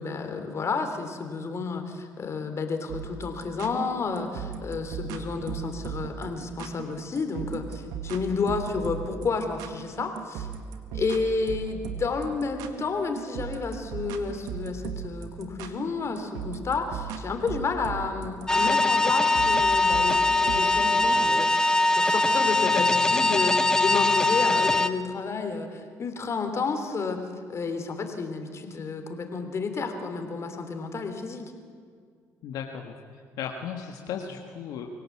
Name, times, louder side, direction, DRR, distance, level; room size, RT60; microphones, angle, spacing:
voice 1, 0.0-10.5 10.9-27.2 27.5-31.4, left 4 dB, 45° left, 6 dB, 3.4 m, -31 dB
sound 1, 2.9-20.6, right 8 dB, 85° right, 1.8 m, -37 dB
sound 2, 18.5-24.9, left 2 dB, 10° left, 1.2 m, -22 dB
voice 2, 32.4-34.9, left 7 dB, 75° left, 3 dB, 1.7 m, -36 dB
24.5 x 17.5 x 8.6 m, 2.1 s
supercardioid pair, 70°, 7 cm